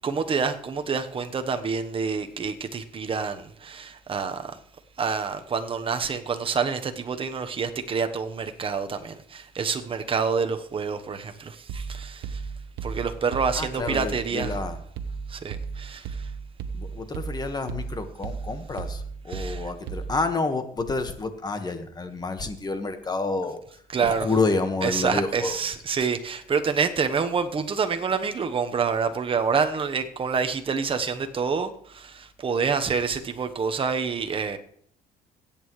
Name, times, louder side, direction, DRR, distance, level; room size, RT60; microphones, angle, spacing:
voice 1, 0.0-4.6 5.0-12.4 12.8-14.5 15.3-16.3 19.3-19.6 23.9-24.3 24.8-34.6, right 5 dB, 30° right, 1.1 m, -27 dB
sound 1, 11.7-20.4, right 5 dB, 75° right, 1.0 m, -35 dB
voice 2, 13.5-14.8 16.7-25.6, left 3 dB, 25° left, 1.4 m, -29 dB
21.5 x 8.6 x 3.2 m
cardioid pair, 110°, 17 cm